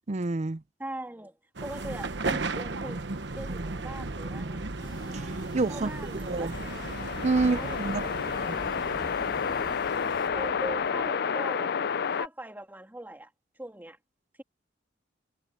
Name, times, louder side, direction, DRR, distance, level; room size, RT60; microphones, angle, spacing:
voice 1, 0.1-0.6 5.1-5.9 6.3-6.5 7.2-8.1 8.5-8.6, right 3 dB, 40° right, 0.6 m, -28 dB
voice 2, 0.8-3.0 3.4-4.6 5.7-6.5 7.4-8.2 10.3-11.8 12.1-14.0, right 1 dB, 10° right, 2.6 m, -41 dB
sound 1, 1.6-11.2, right 3 dB, 65° right, 1.1 m, -36 dB
sound 2, 4.8-10.3, left 2 dB, 25° left, 4.5 m, -50 dB
sound 3, 6.5-12.3, left 6 dB, 60° left, 0.5 m, -30 dB
head